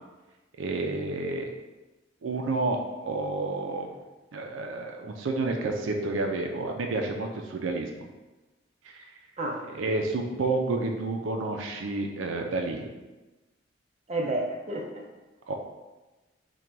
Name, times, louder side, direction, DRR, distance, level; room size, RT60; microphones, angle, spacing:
voice 1, 0.6-1.5 2.2-3.9 4.3-7.9 8.8-9.1 9.7-12.9 15.5-15.6, right 3 dB, 80° right, 3 dB, 0.4 m, -30 dB
voice 2, 14.1-15.0, right 1 dB, 35° right, -1 dB, 0.6 m, -30 dB
3.8 x 2.2 x 4.5 m, 1.1 s
head